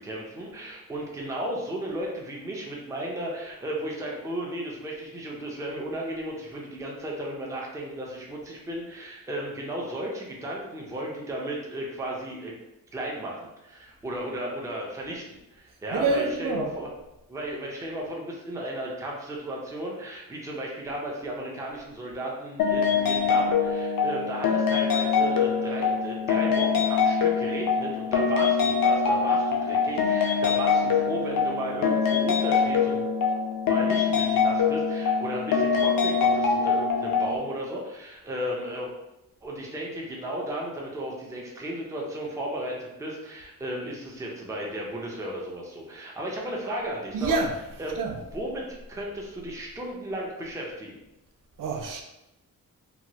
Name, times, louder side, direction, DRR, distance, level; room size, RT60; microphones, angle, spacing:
voice 1, 0.0-12.5 12.9-16.9 17.3-33.1 33.7-38.9 39.4-47.4 47.8-48.0 48.3-51.0, right 1 dB, 10° right, 0.4 m, -34 dB
voice 2, 15.9-16.7 47.1-48.2 51.6-52.0, right 3 dB, 70° right, 0.5 m, -27 dB
sound 1, 22.6-37.4, left 5 dB, 75° left, 0.5 m, -24 dB
3.0 x 2.2 x 2.7 m
wide cardioid pair, 165°, 34 cm